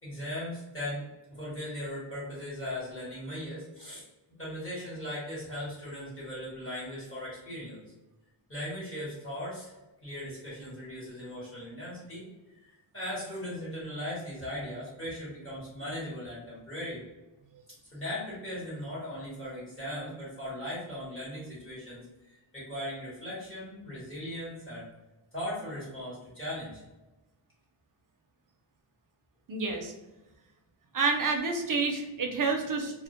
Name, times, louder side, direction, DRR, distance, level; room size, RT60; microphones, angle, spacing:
voice 1, 0.0-4.0 4.4-7.9 8.5-9.7 10.0-12.3 12.6-17.0 17.9-24.9 25.3-26.8, left 1 dB, 25° left, -8 dB, 1.0 m, -38 dB
voice 2, 29.5-29.9 30.9-33.0, right 4 dB, 45° right, 4 dB, 0.5 m, -29 dB
2.1 x 2.1 x 2.8 m, 1.0 s
wide cardioid pair, 105°, 48 cm